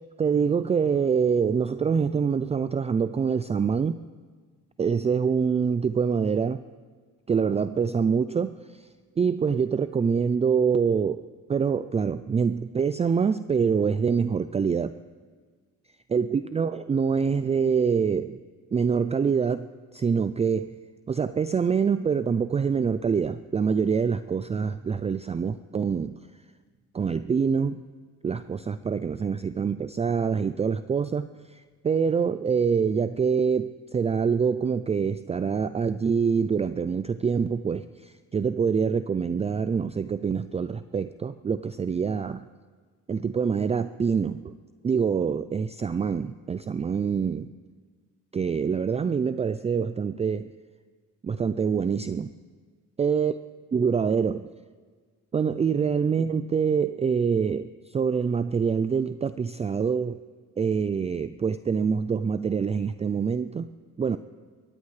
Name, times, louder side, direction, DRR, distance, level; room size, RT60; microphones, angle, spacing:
voice 1, 0.2-4.0 4.8-6.6 7.3-8.8 9.2-11.2 11.5-15.0 16.1-18.4 18.7-20.7 21.1-26.2 26.9-27.9 28.2-42.5 43.1-44.5 44.8-47.5 48.3-50.5 51.2-52.3 53.0-53.3 53.7-54.5 55.3-60.2 60.6-63.7 64.0-64.2, right 6 dB, 20° right, 13 dB, 0.4 m, -25 dB
27.5 x 14.5 x 3.2 m, 1.5 s
cardioid pair, 80°, 32 cm